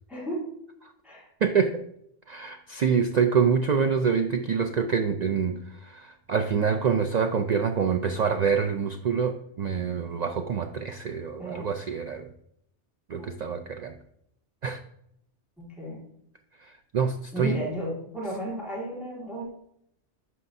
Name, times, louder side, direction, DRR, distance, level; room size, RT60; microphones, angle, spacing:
voice 1, 0.1-0.5 1.0-1.3 11.4-11.7 13.2-13.3 15.6-16.0 17.3-19.5, right 1 dB, ahead, -5 dB, 1.9 m, -34 dB
voice 2, 1.4-1.7 2.3-12.3 13.1-13.9 14.6-14.8 16.6-17.6, right 6 dB, 70° right, 6 dB, 0.4 m, -26 dB
9.5 x 5.7 x 2.6 m, 0.73 s
omnidirectional pair, 1.2 m